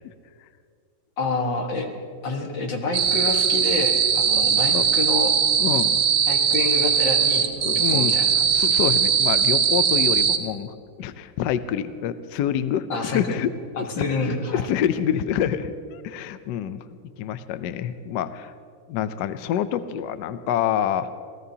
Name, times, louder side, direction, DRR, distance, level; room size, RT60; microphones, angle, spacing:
voice 1, 1.2-1.9 2.2-5.3 6.3-8.7 12.9-13.4 13.8-14.7 16.6-16.7, left 3 dB, 60° left, 3 dB, 2.2 m, -28 dB
sound 1, 2.9-10.4, right 7 dB, 65° right, 1.7 m, -20 dB
voice 2, 5.6-6.0 7.6-8.1 8.5-13.5 13.8-16.8 17.2-18.5 18.9-21.1, left 9 dB, 75° left, 12 dB, 0.9 m, -27 dB
28.0 x 18.0 x 2.8 m, 2.3 s
omnidirectional pair, 2.4 m